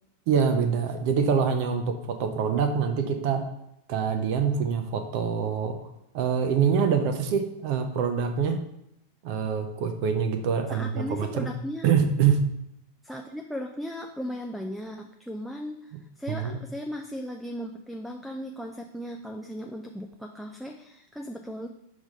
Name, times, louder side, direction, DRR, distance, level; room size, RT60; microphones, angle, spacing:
voice 1, 0.3-3.5 3.9-8.6 9.2-11.5 11.8-12.5 16.3-16.6, right 6 dB, 45° right, 7 dB, 0.7 m, -25 dB
voice 2, 10.7-11.9 13.0-21.7, equal, ahead, 4 dB, 0.4 m, -37 dB
5.9 x 3.4 x 5.4 m, 0.80 s
figure-of-eight pair, 90°, 0 cm